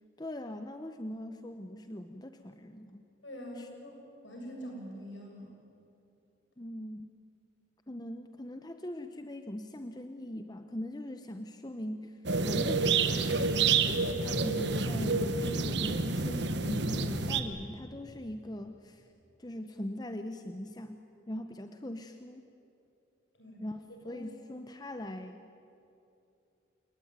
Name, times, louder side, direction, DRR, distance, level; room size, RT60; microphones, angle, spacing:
voice 1, 0.2-3.0 3.6-3.7 6.6-7.2 7.9-13.6 13.9-19.1 19.4-21.0 21.3-22.4 23.6-25.5, left 1 dB, 20° left, 7 dB, 0.8 m, -41 dB
voice 2, 3.2-4.0 4.2-5.6 23.4-23.6 24.0-24.5, equal, 70° left, 1 dB, 7.2 m, -44 dB
sound 1, 12.3-17.4, right 4 dB, 60° right, 1.2 m, -28 dB
28.5 x 18.5 x 9.4 m, 2.8 s
head